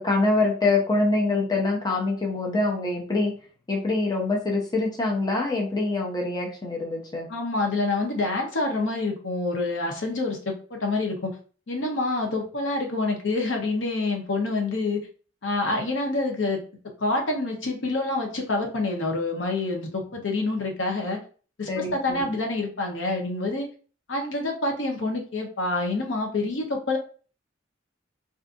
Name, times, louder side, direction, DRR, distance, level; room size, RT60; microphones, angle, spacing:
voice 1, 0.0-3.3 3.7-7.3 21.7-22.3, left 2 dB, 20° left, -1 dB, 0.5 m, -25 dB
voice 2, 7.3-11.3 11.7-15.0 15.4-16.6 17.0-21.2 21.6-23.7 24.1-27.0, left 2 dB, 75° left, 1 dB, 0.7 m, -27 dB
2.6 x 2.4 x 2.5 m, 0.39 s
head